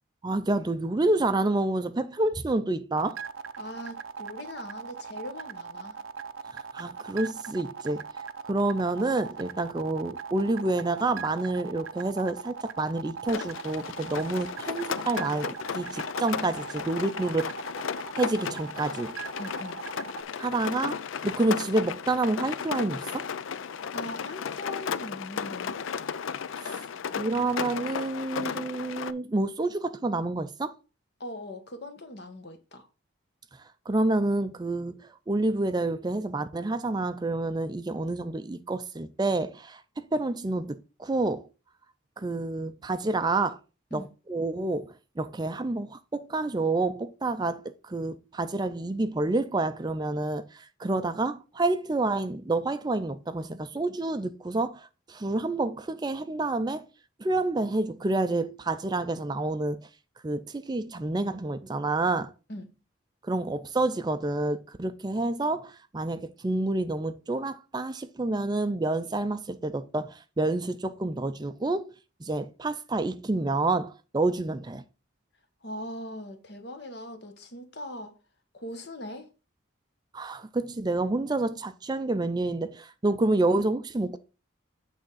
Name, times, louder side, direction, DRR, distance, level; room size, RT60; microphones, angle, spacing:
voice 1, 0.2-3.2 6.5-8.1 8.5-17.5 18.1-19.2 20.4-23.3 26.6-26.8 27.0-30.8 33.9-41.5 42.2-43.6 43.9-56.9 57.2-59.9 60.2-62.3 63.2-71.9 72.2-74.8 80.1-84.2, right 2 dB, 20° right, 0.4 m, -28 dB
sound 1, 3.0-20.2, right 6 dB, 85° right, 0.6 m, -39 dB
voice 2, 3.6-6.0 19.4-19.8 23.7-25.9 31.2-32.9 43.9-44.1 62.5-62.7 75.6-78.1 78.5-79.3, left 1 dB, 55° left, 1.3 m, -40 dB
Rain, 13.3-29.1, left 6 dB, 75° left, 0.4 m, -35 dB
8.8 x 3.5 x 5.6 m
head